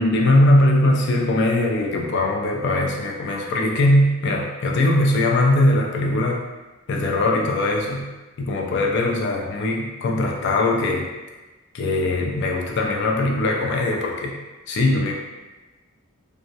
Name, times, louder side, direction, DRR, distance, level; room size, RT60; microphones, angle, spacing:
voice 1, 0.0-6.4 6.9-8.1 8.4-11.1 11.7-14.3 14.7-15.1, left 1 dB, 55° left, 0 dB, 0.4 m, -20 dB
2.2 x 2.1 x 2.6 m, 1.1 s
head